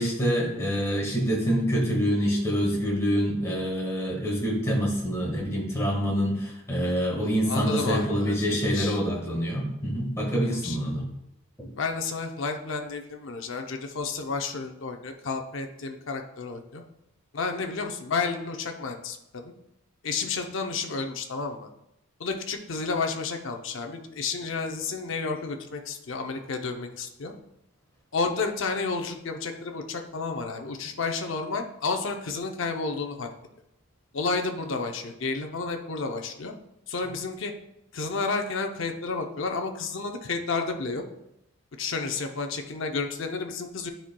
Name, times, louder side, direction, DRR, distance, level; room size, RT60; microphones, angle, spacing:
voice 1, 0.0-11.1, equal, 15° left, -2 dB, 1.5 m, -26 dB
voice 2, 7.5-9.0 10.4-10.8 11.8-16.8 17.3-19.5 20.0-21.7 22.2-27.3 28.1-33.3 34.1-36.5 36.9-37.5 37.9-41.0 41.8-43.9, left 4 dB, 60° left, 4 dB, 0.6 m, -31 dB
9.8 x 4.4 x 2.2 m, 0.86 s
head